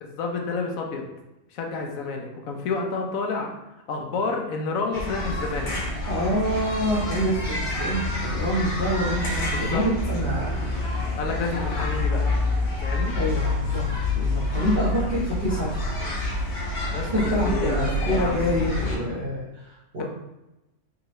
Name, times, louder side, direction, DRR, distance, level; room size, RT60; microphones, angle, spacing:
voice 1, 0.0-1.1 1.5-3.5 3.9-5.7 9.5-9.8 11.1-12.3 12.8-13.2 16.9-17.1 17.5-18.5, left 4 dB, 80° left, 2 dB, 1.1 m, -29 dB
sound 1, 4.9-19.0, left 2 dB, 55° left, 1.1 m, -27 dB
voice 2, 6.1-10.8 13.1-13.8 14.1-16.0 17.1-20.0, equal, 40° right, -9 dB, 0.9 m, -26 dB
3.6 x 2.9 x 3.0 m, 0.95 s
omnidirectional pair, 1.4 m